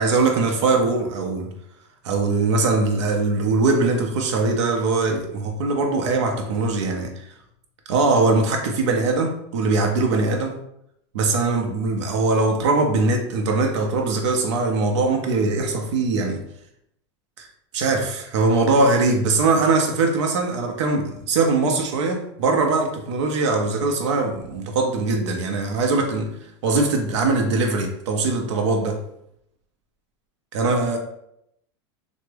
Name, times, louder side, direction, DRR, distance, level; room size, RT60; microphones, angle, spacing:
voice 1, 0.0-1.5 2.0-7.3 7.9-10.6 11.1-16.4 17.4-17.5 17.7-26.3 26.6-29.0 30.5-31.0, right 3 dB, 85° right, 3 dB, 0.6 m, -21 dB
3.4 x 2.0 x 3.2 m, 0.77 s
supercardioid pair, 155°, 15 cm